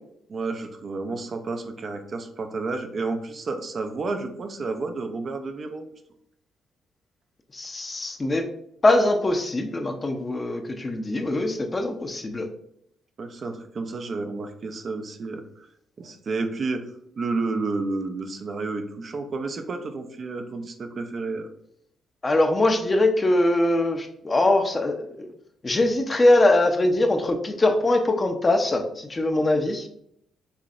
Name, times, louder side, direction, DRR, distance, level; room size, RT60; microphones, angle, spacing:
voice 1, 0.3-5.9 13.2-15.7 16.0-16.9 17.2-21.5 29.4-29.5, right 3 dB, 50° right, 6 dB, 0.6 m, -31 dB
voice 2, 7.5-8.5 8.8-12.5 22.2-25.3 25.6-29.9, left 2 dB, 30° left, 4 dB, 0.7 m, -22 dB
5.7 x 3.2 x 2.5 m, 0.73 s
supercardioid pair, 60°, 0 cm